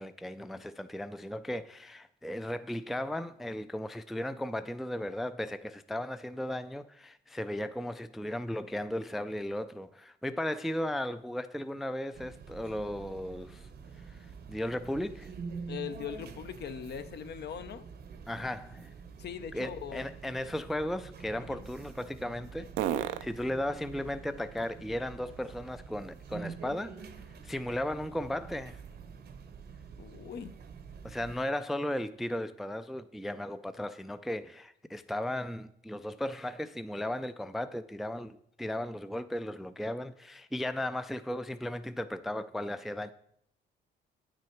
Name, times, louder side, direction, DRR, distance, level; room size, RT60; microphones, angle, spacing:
voice 1, 0.0-13.7 14.0-15.3 18.3-18.9 19.5-27.1 27.4-28.8 31.0-43.1, left 1 dB, ahead, 0.3 m, -36 dB
sound 1, 12.1-31.4, right 5 dB, 55° right, 0.8 m, -47 dB
voice 2, 15.7-17.9 19.2-20.0 21.4-21.7 30.0-30.6, left 8 dB, 55° left, 0.7 m, -40 dB
sound 2, 17.8-26.8 27.3-31.1, right 11 dB, 85° right, 0.5 m, -44 dB
9.1 x 6.3 x 4.4 m
cardioid pair, 90°, 20 cm